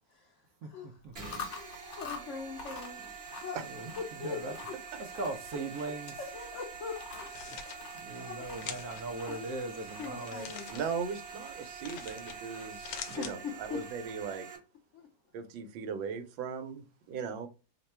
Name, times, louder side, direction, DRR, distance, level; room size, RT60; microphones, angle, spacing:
Chewing mastication, 1.0-14.2, left 5 dB, 50° left, 0.9 m, -48 dB
sound 1, 1.2-14.6, right 6 dB, 35° right, 1.2 m, -46 dB
voice 1, 1.5-3.0 3.2-3.6 4.2-4.4 5.8-5.9 6.2-7.4 8.1-8.4 9.3-9.4 10.0-10.7 13.2-13.8 14.9-15.1, left 6 dB, 90° left, 0.6 m, -41 dB
voice 2, 3.6-4.5 5.0-6.2 8.0-10.5, right 2 dB, 70° right, 0.9 m, -39 dB
sound 2, 7.1-7.8 8.6-9.0 10.2-10.8 11.8-12.4 12.7-13.3, left 8 dB, 70° left, 1.2 m, -43 dB
voice 3, 10.7-14.5 15.3-17.5, right 6 dB, 85° right, 1.4 m, -38 dB
3.3 x 2.2 x 4.2 m
omnidirectional pair, 2.1 m